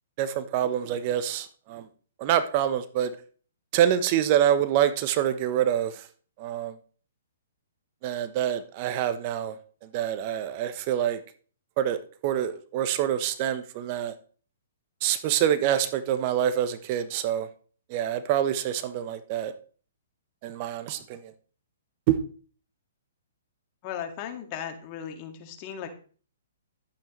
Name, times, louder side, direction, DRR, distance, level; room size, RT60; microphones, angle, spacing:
voice 1, 0.2-1.9 2.2-3.2 3.7-6.1 6.4-6.8 8.0-9.6 9.8-11.2 11.8-14.1 15.0-17.5 17.9-19.5 20.4-21.3 22.1-22.2, right 10 dB, 40° right, 0.9 m, -26 dB
voice 2, 23.8-25.9, left 9 dB, 35° left, 2.0 m, -36 dB
11.5 x 9.1 x 3.2 m
hypercardioid pair, 125°, 0 cm